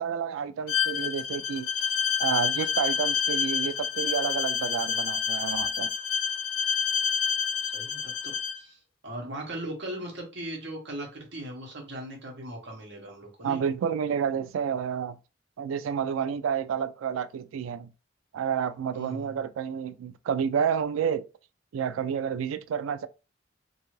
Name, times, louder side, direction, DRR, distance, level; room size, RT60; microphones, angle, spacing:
voice 1, 0.0-1.7 2.2-5.9 13.4-15.2 15.6-17.9 18.3-21.3 21.7-23.1, right 7 dB, 85° right, 0.3 m, -30 dB
Bowed string instrument, 0.7-8.6, left 7 dB, 80° left, 0.3 m, -28 dB
voice 2, 7.6-13.6 18.9-19.4, right 1 dB, 65° right, 1.0 m, -39 dB
2.7 x 2.4 x 3.0 m
head